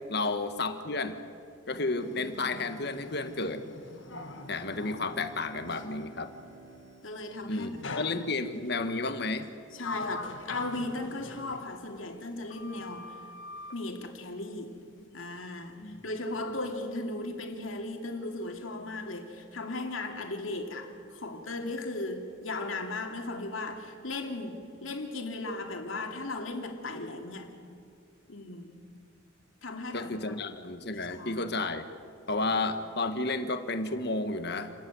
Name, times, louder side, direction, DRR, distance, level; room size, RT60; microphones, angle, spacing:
voice 1, 0.1-1.2 1.7-3.6 4.5-6.3 7.5-9.5 15.8-16.0 29.9-31.9 32.3-34.7, left 3 dB, 55° left, 9 dB, 1.5 m, -32 dB
Sliding door, 2.0-6.0 7.8-8.7 9.4-12.3 12.5-13.8, left 3 dB, 70° left, 1.5 m, -43 dB
voice 2, 2.1-2.6 4.1-4.7 7.0-7.7 9.7-13.1 13.7-14.8 15.1-27.5 28.3-28.7 29.6-30.3 31.1-31.5 32.4-32.5, left 2 dB, 85° left, 3 dB, 2.9 m, -37 dB
Bowed string instrument, 3.7-8.0, right 2 dB, 70° right, 2.6 m, -53 dB
28.5 x 14.0 x 9.7 m, 2.3 s
head